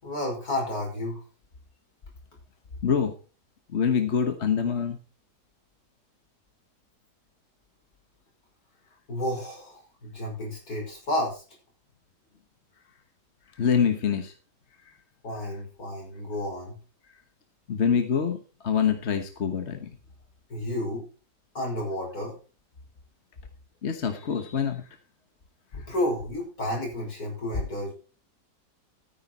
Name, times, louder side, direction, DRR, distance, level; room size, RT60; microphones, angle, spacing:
voice 1, 0.0-1.2 9.1-11.4 15.2-16.8 20.5-21.0 21.5-22.4 25.7-27.9, left 1 dB, 60° left, 0 dB, 6.2 m, -31 dB
voice 2, 3.7-5.0 13.6-14.3 17.7-18.4 18.6-19.9 23.8-24.8, left 7 dB, 45° left, 7 dB, 1.3 m, -25 dB
13.5 x 9.7 x 4.1 m, 0.35 s
omnidirectional pair, 1.8 m